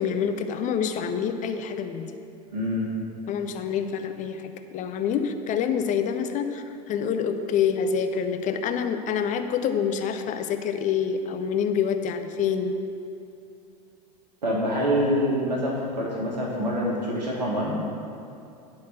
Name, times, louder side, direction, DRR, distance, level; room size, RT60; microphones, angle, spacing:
voice 1, 0.0-2.1 3.3-12.8, left 7 dB, 35° left, 7 dB, 0.7 m, -27 dB
voice 2, 2.5-2.9 14.4-17.7, equal, 80° right, -3 dB, 1.5 m, -26 dB
10.5 x 4.2 x 7.4 m, 2.7 s
figure-of-eight pair, 80°, 21 cm